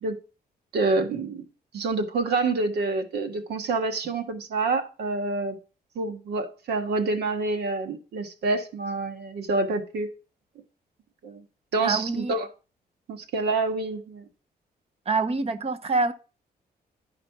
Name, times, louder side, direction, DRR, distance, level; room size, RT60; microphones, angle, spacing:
voice 1, 0.7-1.4 1.7-5.6 6.0-10.1 11.2-11.4 11.7-12.5 13.1-14.2, right 3 dB, 90° right, 1.7 m, -27 dB
voice 2, 11.8-12.3 15.1-16.1, right 3 dB, 40° right, 1.0 m, -25 dB
11.0 x 4.9 x 5.9 m
wide cardioid pair, 140°, 17 cm